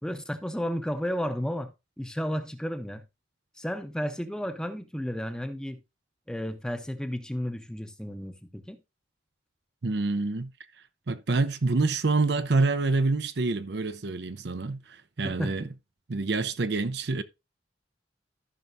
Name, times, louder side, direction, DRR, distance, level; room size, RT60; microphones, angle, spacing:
voice 1, 0.0-1.7 2.0-3.0 3.6-5.8 6.3-8.8 15.2-15.5, equal, 5° left, 0.8 m, -32 dB
voice 2, 9.8-10.5 11.1-15.7 16.1-17.2, right 3 dB, 60° right, 0.6 m, -27 dB
14.0 x 5.8 x 2.6 m
head